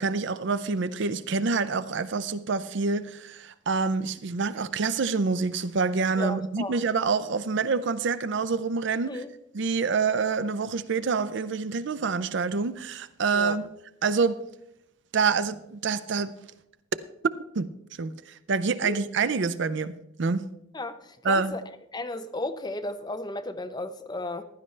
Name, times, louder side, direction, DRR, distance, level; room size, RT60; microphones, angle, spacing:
voice 1, 0.0-9.2 9.5-13.7 14.0-14.4 15.1-16.3 17.2-17.7 18.0-18.1 18.5-19.9 20.2-20.5 21.2-21.5, right 4 dB, 60° right, 0.5 m, -27 dB
voice 2, 6.2-6.8 9.1-9.3 13.3-13.6 18.8-19.0 20.7-21.6 21.9-24.4, left 2 dB, 20° left, 0.7 m, -34 dB
15.5 x 11.5 x 3.3 m
head